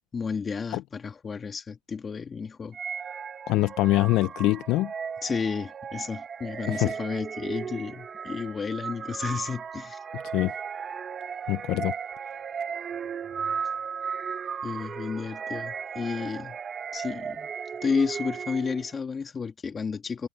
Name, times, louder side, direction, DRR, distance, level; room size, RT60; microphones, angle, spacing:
voice 1, 0.1-2.8 5.2-10.0 14.6-16.6 16.9-17.5 17.8-20.3, left 5 dB, 20° left, 2.3 m, -32 dB
sound 1, 2.7-19.0, right 6 dB, 25° right, 1.4 m, -36 dB
voice 2, 3.5-4.9 6.7-6.9 10.3-10.5 11.5-11.9, left 18 dB, 55° left, 0.6 m, -24 dB
supercardioid pair, 125°, 0 cm